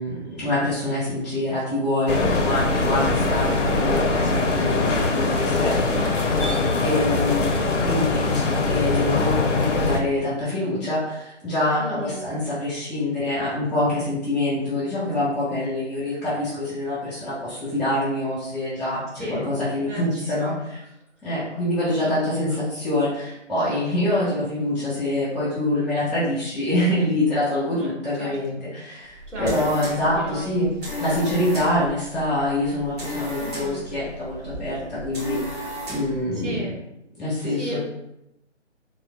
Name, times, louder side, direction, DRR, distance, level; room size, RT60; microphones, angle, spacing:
voice 1, 0.0-7.5 7.7-20.5 21.2-30.7 31.0-36.7 37.2-37.8, left 1 dB, ahead, -15 dB, 0.3 m, -25 dB
sound 1, 2.1-10.0, left 3 dB, 80° left, 0.6 m, -22 dB
sound 2, 2.2-7.3, right 3 dB, 55° right, 0.8 m, -36 dB
voice 2, 4.2-4.6 6.7-7.4 11.8-12.3 19.1-19.5 19.9-20.6 22.0-22.1 22.5-22.6 27.7-27.9 28.2-28.6 29.3-30.5 33.4-33.9 36.3-36.8 37.5-37.8, equal, 75° right, -3 dB, 1.5 m, -35 dB
sound 3, 29.1-36.2, equal, 35° right, 1.3 m, -35 dB
3.8 x 2.1 x 2.2 m, 0.85 s
figure-of-eight pair, 160°, 36 cm